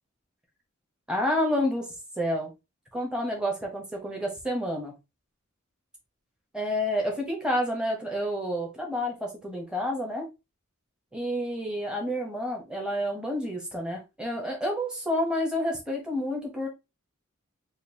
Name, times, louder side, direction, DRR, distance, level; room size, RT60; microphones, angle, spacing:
voice 1, 1.1-1.9 2.2-2.5 2.9-4.9 6.5-10.3 11.1-16.7, equal, 5° right, 0.9 m, -29 dB
5.2 x 2.4 x 2.7 m
head